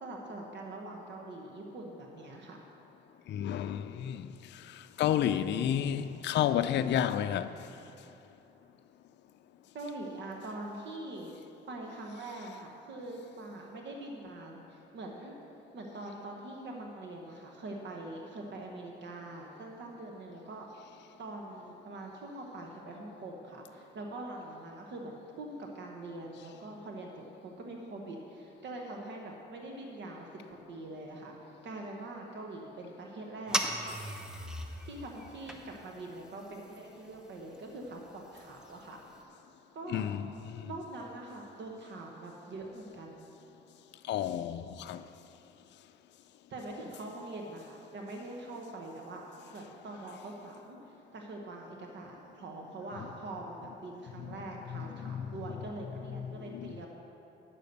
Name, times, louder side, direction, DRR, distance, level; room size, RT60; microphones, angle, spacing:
voice 1, 0.0-2.6 9.7-11.3 11.7-15.4 15.7-20.7 21.2-34.0 34.8-39.0 39.7-40.1 40.6-43.3 46.5-49.2 49.5-50.8 51.1-56.9, right 2 dB, 65° right, 1.1 m, -43 dB
voice 2, 3.3-7.6 39.9-40.7 44.1-45.1 54.2-54.4 54.7-55.3 56.5-56.8, left 10 dB, 65° left, 0.4 m, -31 dB
sound 1, 33.5-39.2, equal, 5° right, 0.8 m, -40 dB
9.4 x 6.8 x 6.6 m
cardioid pair, 90°, 20 cm